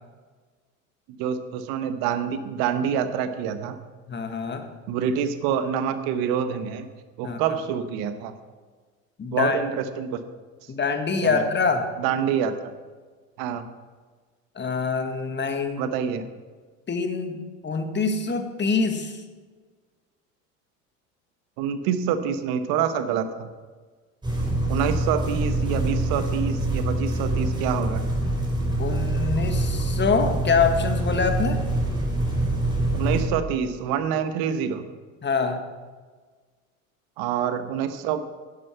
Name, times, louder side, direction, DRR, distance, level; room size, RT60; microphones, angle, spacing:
voice 1, 1.2-3.8 4.9-6.9 7.2-8.3 9.3-10.2 11.2-11.4 12.0-12.7 13.4-13.6 15.8-16.3 21.6-23.5 24.7-28.0 32.9-34.8 37.2-38.2, right 8 dB, 60° right, 10 dB, 1.2 m, -26 dB
voice 2, 4.1-4.7 7.2-7.4 9.2-9.6 10.7-11.9 14.5-15.9 16.9-19.2 28.8-31.6 35.2-35.6, left 5 dB, 25° left, 7 dB, 1.7 m, -25 dB
sound 1, 24.2-33.3, right 1 dB, 10° right, 4.3 m, -25 dB
11.5 x 9.9 x 5.8 m, 1.4 s
hypercardioid pair, 70°, 41 cm